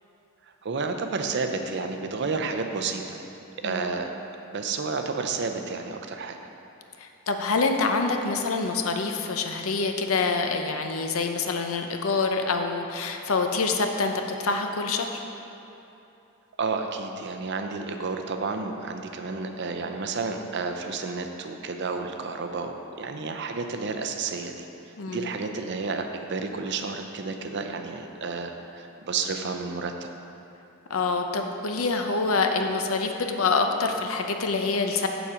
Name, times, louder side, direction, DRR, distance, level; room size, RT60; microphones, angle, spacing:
voice 1, 0.6-3.2 3.6-4.1 4.5-6.4 16.6-24.7 25.1-30.1, right 4 dB, 55° right, 5 dB, 0.6 m, -31 dB
voice 2, 3.6-4.0 7.0-15.1 25.0-25.3 30.9-35.1, left 4 dB, 75° left, 4 dB, 0.7 m, -26 dB
7.2 x 7.0 x 5.0 m, 2.9 s
head